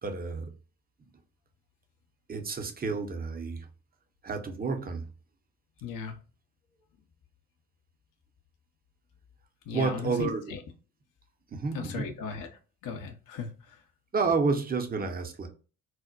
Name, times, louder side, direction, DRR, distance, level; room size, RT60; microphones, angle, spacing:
voice 1, 0.0-0.5 2.3-3.7 4.2-5.1 9.7-10.5 11.5-12.1 14.1-15.5, right 4 dB, 20° right, 0.7 m, -30 dB
voice 2, 5.8-6.2 9.7-10.6 11.7-12.5 12.8-13.5, left 6 dB, 50° left, 0.7 m, -36 dB
4.2 x 2.1 x 2.4 m
hypercardioid pair, 50°, 41 cm